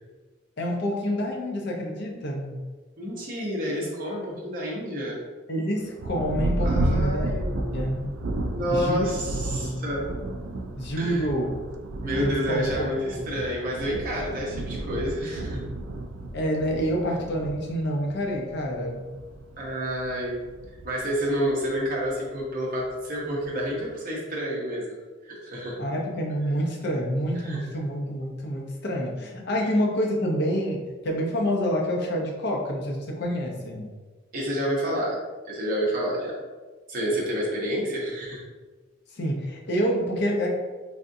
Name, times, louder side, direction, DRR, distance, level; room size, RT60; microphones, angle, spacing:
voice 1, 0.6-2.6 5.5-8.1 8.7-9.8 10.8-11.5 12.2-12.9 13.2-13.3 16.3-19.1 25.8-30.8 31.0-33.9 39.2-40.5, equal, 55° left, -1 dB, 0.6 m, -28 dB
voice 2, 3.0-5.2 6.6-7.7 8.5-10.1 11.0-11.3 12.0-15.6 19.6-20.4 20.8-24.9 25.2-25.8 27.4-27.6 34.3-35.2 35.5-36.4 36.9-38.4, equal, 45° right, -4 dB, 0.8 m, -29 dB
Thunder, 6.0-22.0 22.8-22.9 23.4-23.9, right 1 dB, 65° right, 0.3 m, -32 dB
3.5 x 2.5 x 2.6 m, 1.3 s
head